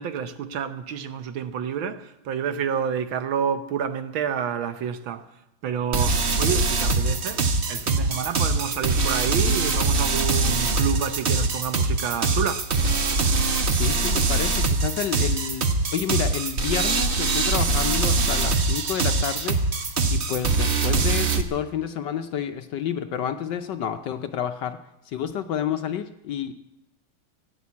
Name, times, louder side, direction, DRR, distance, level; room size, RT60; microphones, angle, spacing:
voice 1, 0.0-12.7, right 7 dB, 70° right, 1.6 m, -29 dB
sound 1, 5.9-21.4, right 3 dB, 40° right, 1.0 m, -23 dB
voice 2, 13.8-19.6 20.1-24.8 25.1-26.5, left 9 dB, 65° left, 1.2 m, -29 dB
17.0 x 9.6 x 8.4 m
omnidirectional pair, 2.4 m